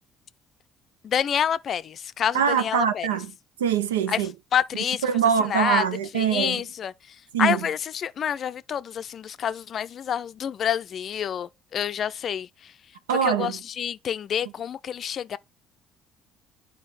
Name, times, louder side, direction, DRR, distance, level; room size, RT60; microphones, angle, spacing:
voice 1, 1.0-3.1 4.1-4.2 4.5-5.0 5.5-5.8 6.1-6.9 7.4-12.5 13.1-15.4, left 9 dB, 50° left, 0.4 m, -27 dB
voice 2, 2.3-3.3 3.6-4.3 5.0-6.6 7.3-7.7 13.1-13.6, right 8 dB, 85° right, 0.6 m, -23 dB
8.9 x 4.6 x 4.1 m
hypercardioid pair, 55°, 0 cm